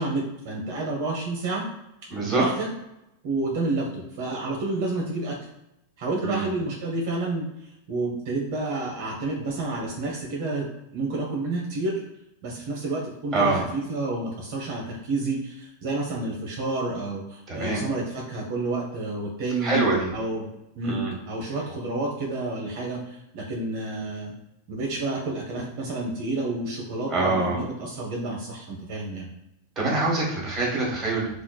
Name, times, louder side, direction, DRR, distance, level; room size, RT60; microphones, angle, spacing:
voice 1, 0.0-1.7 2.3-2.7 3.2-5.4 6.0-10.7 10.9-12.0 12.4-19.8 20.1-20.5 20.7-24.3 24.7-29.3, right 2 dB, 60° right, -2 dB, 0.7 m, -29 dB
voice 2, 2.1-2.4 6.2-6.5 13.3-13.6 17.5-17.8 19.6-20.1 20.8-21.1 27.1-27.6 29.8-31.3, right 3 dB, 25° right, -3 dB, 1.3 m, -25 dB
3.2 x 2.4 x 2.2 m, 0.89 s
hypercardioid pair, 95°, 0 cm